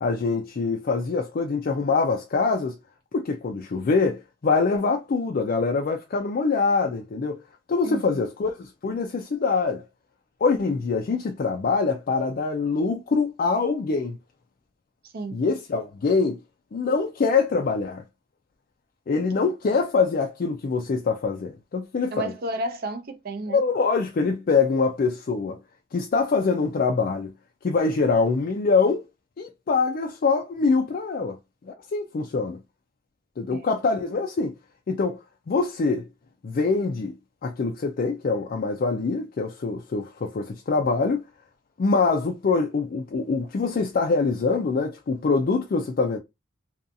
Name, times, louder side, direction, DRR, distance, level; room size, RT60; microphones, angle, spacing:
voice 1, 0.0-2.8 3.1-7.4 7.7-9.8 10.4-14.2 15.3-16.4 16.7-18.0 19.1-22.3 23.5-25.6 25.9-27.3 27.6-29.0 29.4-31.4 31.7-32.6 33.4-34.5 34.9-35.2 35.5-36.1 36.4-37.2 37.4-41.2 41.8-46.2, left 4 dB, 50° left, 0.4 m, -24 dB
voice 2, 7.8-8.2 15.1-15.4 22.1-23.6 33.5-33.7, right 1 dB, 50° right, 0.5 m, -32 dB
2.6 x 2.3 x 2.5 m
head